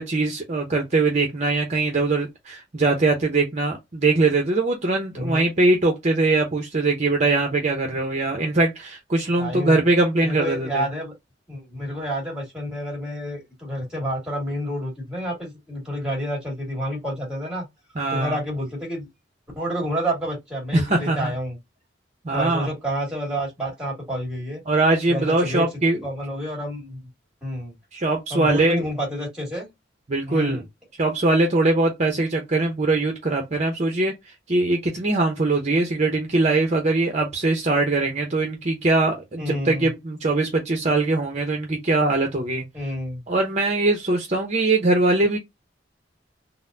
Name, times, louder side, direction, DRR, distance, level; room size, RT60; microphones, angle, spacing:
voice 1, 0.0-10.9 17.9-18.4 20.7-21.3 22.2-22.7 24.7-26.0 27.9-28.9 30.1-30.6 31.0-34.1 34.5-42.6 43.3-45.4, right 2 dB, 40° right, 0.8 m, -22 dB
voice 2, 5.2-5.5 9.4-9.8 10.2-11.1 11.5-17.7 18.1-19.1 19.6-21.6 22.3-24.6 25.1-27.0 27.4-27.8 28.3-29.7 30.3-30.6 39.4-39.9 42.7-43.2, equal, 5° right, 2.0 m, -29 dB
4.0 x 2.2 x 2.6 m
head